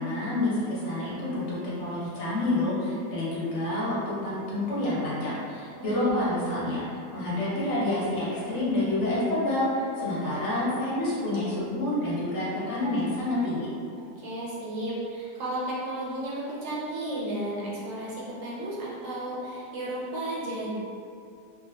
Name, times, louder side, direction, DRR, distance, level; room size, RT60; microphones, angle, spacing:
voice 1, 0.0-13.7, left 1 dB, 55° left, -8 dB, 0.9 m, -28 dB
voice 2, 5.8-6.3 14.2-20.7, right 1 dB, 65° right, -6 dB, 0.8 m, -33 dB
3.1 x 2.2 x 2.3 m, 2.4 s
omnidirectional pair, 1.8 m